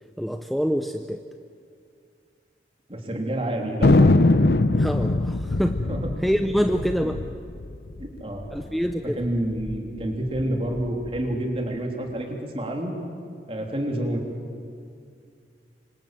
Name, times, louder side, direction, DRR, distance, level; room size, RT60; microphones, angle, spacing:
voice 1, 0.2-1.2 4.8-5.8 6.2-7.2 8.5-9.2, equal, ahead, 6 dB, 0.6 m, -25 dB
voice 2, 2.9-4.1 5.8-6.1 7.0-7.1 8.0-8.4 9.1-12.9 13.5-14.2, right 1 dB, 30° right, 1 dB, 3.4 m, -28 dB
Thunder, 3.8-8.6 8.9-9.0 9.2-9.8 10.2-11.4, left 2 dB, 65° left, 0.8 m, -22 dB
27.0 x 25.5 x 7.6 m, 2.3 s
head